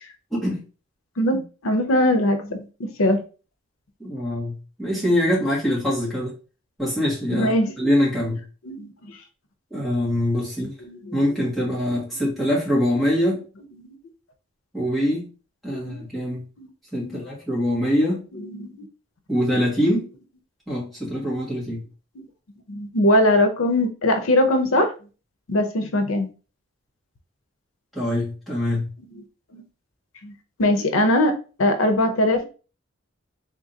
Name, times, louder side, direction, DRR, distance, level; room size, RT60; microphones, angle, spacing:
voice 1, 0.3-0.6 4.0-6.3 6.8-8.4 9.7-10.7 11.1-13.4 14.7-15.3 15.6-16.4 16.9-18.3 19.3-20.1 20.7-21.8 27.9-28.9, equal, ahead, -6 dB, 1.7 m, -23 dB
voice 2, 1.2-3.2 7.3-7.7 8.7-9.2 10.8-11.2 15.7-16.0 16.6-16.7 17.0-17.2 18.4-18.9 21.5-21.6 22.7-24.9 25.5-26.3 29.1-29.2 29.5-29.6 30.2-30.3 30.6-32.4, left 1 dB, 85° left, 6 dB, 0.7 m, -21 dB
3.7 x 3.5 x 2.7 m, 0.35 s
head